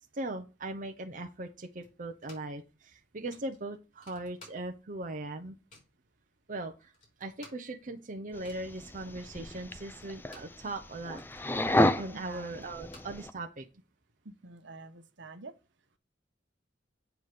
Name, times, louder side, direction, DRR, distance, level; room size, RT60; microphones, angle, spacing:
voice 1, 0.1-5.6 6.5-6.9 7.2-11.2 12.0-13.7, right 2 dB, 45° right, 0.8 m, -39 dB
sound 1, 1.8-2.6 2.9-3.0 3.3-5.0 5.3-6.0 6.5-6.6 6.8-10.6 11.0-13.7, left 2 dB, 45° left, 4.0 m, -57 dB
sound 2, 8.3-13.3, left 1 dB, 10° left, 0.5 m, -32 dB
voice 2, 12.1-12.6 14.2-15.5, right 3 dB, 70° right, 1.0 m, -47 dB
8.2 x 3.8 x 6.6 m
head